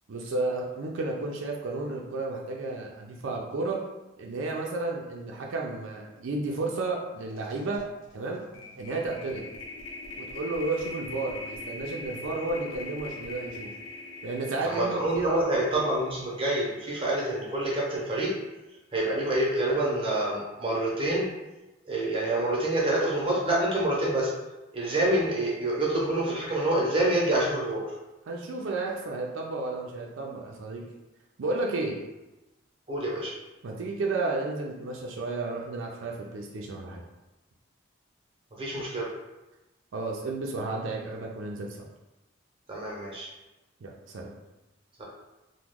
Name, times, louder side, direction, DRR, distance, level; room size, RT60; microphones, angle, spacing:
voice 1, 0.1-3.8 4.2-7.8 8.1-8.4 8.8-9.4 10.2-13.7 14.2-15.6 28.3-30.8 31.4-32.0 33.6-37.0 39.9-41.8 43.8-44.3, right 3 dB, 90° right, -1 dB, 0.4 m, -32 dB
sound 1, 6.8-7.0 7.3-17.5, left 2 dB, 85° left, 0.6 m, -43 dB
voice 2, 14.6-18.3 18.9-21.3 21.9-24.3 24.7-27.8 32.9-33.3 38.6-39.1 42.7-43.3 45.0-45.1, right 1 dB, 25° right, -4 dB, 0.7 m, -27 dB
3.0 x 2.1 x 3.5 m, 1.0 s
head